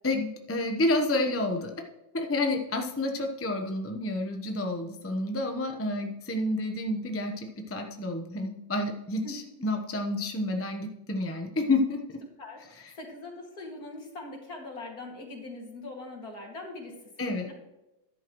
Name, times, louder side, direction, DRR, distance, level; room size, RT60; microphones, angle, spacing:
voice 1, 0.0-1.7 2.1-12.2 12.8-12.9 17.2-17.5, left 2 dB, 15° left, 3 dB, 0.5 m, -29 dB
voice 2, 12.4-17.5, left 2 dB, 50° left, 0 dB, 2.8 m, -42 dB
13.0 x 11.0 x 3.1 m, 0.98 s
omnidirectional pair, 2.1 m